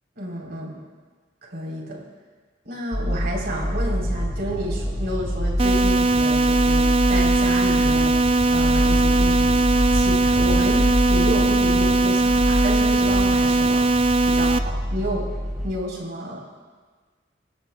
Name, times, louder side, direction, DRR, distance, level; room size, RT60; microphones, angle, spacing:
voice 1, 0.1-0.8 1.4-2.1 2.6-8.2 8.5-9.6 9.9-13.8 14.3-15.3 15.6-16.4, equal, 60° right, -2 dB, 4.0 m, -30 dB
sound 1, 2.9-15.7, equal, 5° right, 4.6 m, -25 dB
sound 2, 5.6-14.6, right 3 dB, 30° right, 0.4 m, -19 dB
24.0 x 17.0 x 2.4 m, 1.5 s
head